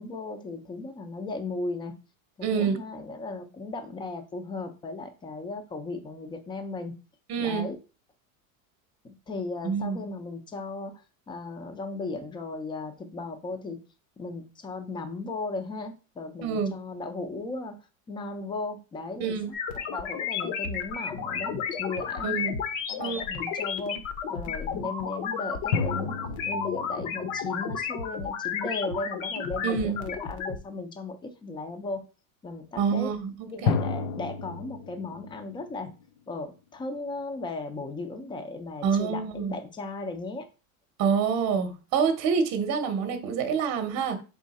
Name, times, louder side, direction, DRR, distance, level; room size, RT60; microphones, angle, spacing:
voice 1, 0.0-1.9 2.4-6.9 7.4-7.8 9.0-11.0 11.3-13.8 14.2-17.8 18.1-21.5 21.8-22.4 22.9-24.0 24.3-26.2 26.4-32.0 32.4-33.1 33.5-35.9 36.3-40.5, left 3 dB, 10° left, 0.4 m, -36 dB
voice 2, 2.4-2.8 7.3-7.7 9.6-10.0 16.4-16.7 19.2-19.5 22.2-22.5 23.0-23.2 29.6-30.0 32.8-33.3 33.6-33.7 38.8-39.5 41.0-44.2, right 6 dB, 40° right, 0.8 m, -27 dB
sound 1, 19.5-30.6, left 6 dB, 65° left, 1.0 m, -32 dB
sound 2, 21.1-22.7 25.7-28.4 33.7-36.6, left 5 dB, 85° left, 0.6 m, -33 dB
3.7 x 3.1 x 4.1 m
supercardioid pair, 135°, 42 cm